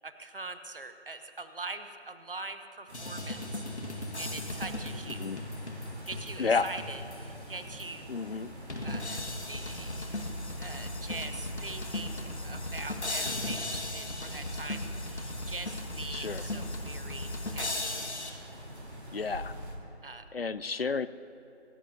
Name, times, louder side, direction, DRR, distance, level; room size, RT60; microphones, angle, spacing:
voice 1, 0.0-5.2 6.1-8.1 8.8-9.2 9.5-10.1 10.6-18.0 20.0-20.3, right 3 dB, 55° right, 9 dB, 1.0 m, -43 dB
sound 1, 2.9-7.4 7.8-7.9 8.7-18.3, left 1 dB, 85° left, 1.9 m, -37 dB
sound 2, 2.9-19.8, equal, 75° right, 3.6 m, -45 dB
voice 2, 8.1-8.5 16.1-16.4 19.1-19.5 20.3-21.1, left 5 dB, 60° left, 15 dB, 0.5 m, -31 dB
24.5 x 11.5 x 2.8 m, 2.9 s
figure-of-eight pair, 170°, 33 cm